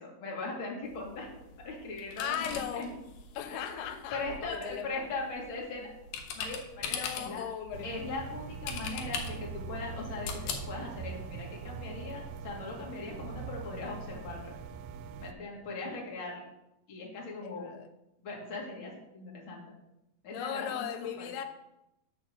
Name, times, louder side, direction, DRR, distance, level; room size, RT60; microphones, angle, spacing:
voice 1, 0.0-1.3 1.6-2.9 3.5-5.9 6.3-7.4 7.8-14.5 15.2-16.5 16.9-17.7 18.2-19.6 20.2-20.8 21.2-21.3, left 3 dB, 40° left, -2 dB, 2.3 m, -40 dB
sound 1, 0.8-11.8, left 5 dB, 70° left, 2.6 m, -42 dB
voice 2, 2.2-2.9 3.4-4.9 6.8-7.9 17.4-17.9 20.3-21.5, left 9 dB, 90° left, 8 dB, 2.7 m, -37 dB
sound 2, 7.7-15.3, right 5 dB, 85° right, 2.5 m, -42 dB
9.7 x 4.7 x 6.5 m, 0.88 s
omnidirectional pair, 4.4 m